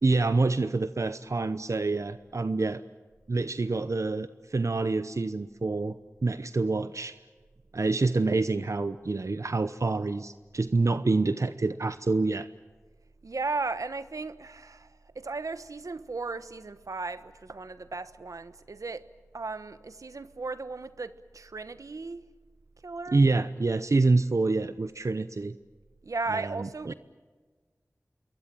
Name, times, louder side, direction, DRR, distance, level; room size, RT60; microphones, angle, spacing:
voice 1, 0.0-2.8 3.3-7.2 7.7-12.5 23.1-25.5 26.3-26.9, right 3 dB, 65° right, 0.8 m, -27 dB
voice 2, 13.2-14.9 15.1-19.0 19.3-22.2 22.8-23.3 26.0-26.9, right 3 dB, 85° right, 1.2 m, -36 dB
27.0 x 22.5 x 7.7 m
wide cardioid pair, 40°, 6 cm